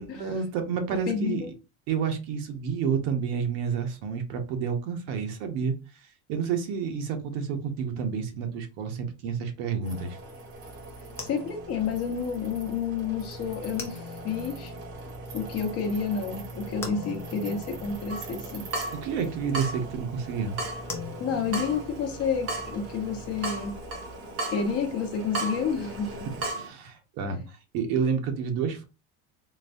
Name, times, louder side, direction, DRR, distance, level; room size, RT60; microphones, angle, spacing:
voice 1, 0.0-1.5 1.9-10.2 18.9-20.6 26.5-28.8, right 6 dB, 60° right, 0.9 m, -30 dB
voice 2, 1.1-1.5 11.2-14.7 15.3-18.6 21.2-23.8 24.5-26.3 27.3-27.4, left 6 dB, 35° left, 0.8 m, -30 dB
sound 1, 9.8-26.5, right 2 dB, 80° right, 1.6 m, -42 dB
sound 2, 10.6-24.1, left 3 dB, 5° left, 0.3 m, -44 dB
Water tap faucet / Drip, 18.1-26.7, right 2 dB, 35° right, 0.9 m, -37 dB
3.9 x 2.2 x 2.6 m
supercardioid pair, 145°, 41 cm